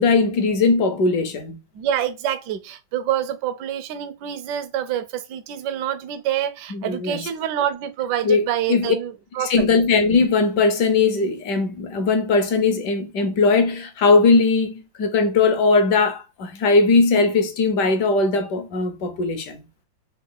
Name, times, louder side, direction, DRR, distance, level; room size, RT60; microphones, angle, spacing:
voice 1, 0.0-1.6 6.7-7.2 8.2-8.9 9.4-19.6, left 4 dB, 70° left, 1.1 m, -19 dB
voice 2, 1.7-9.8, right 10 dB, 70° right, 1.1 m, -27 dB
3.9 x 2.2 x 3.6 m
omnidirectional pair, 2.1 m